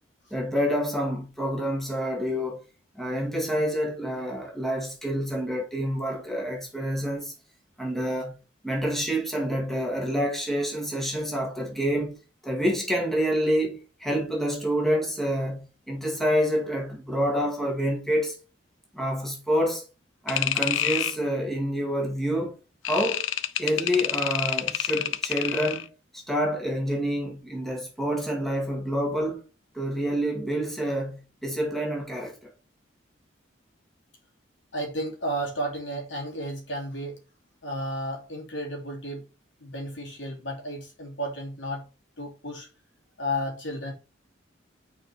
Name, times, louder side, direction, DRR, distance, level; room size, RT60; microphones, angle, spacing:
voice 1, 0.3-2.6 3.0-7.3 7.8-8.4 8.6-12.2 12.4-18.4 18.9-19.8 20.2-22.5 22.8-23.3 23.6-25.9 26.1-29.4 29.7-32.5, equal, ahead, 2.1 m, -27 dB
sound 1, 20.3-21.2 22.8-25.9, left 11 dB, 90° left, 0.5 m, -28 dB
voice 2, 34.7-37.2 37.6-39.3 39.6-41.9 42.2-42.7 43.2-43.9, equal, 70° left, 2.9 m, -33 dB
6.4 x 4.8 x 4.3 m
head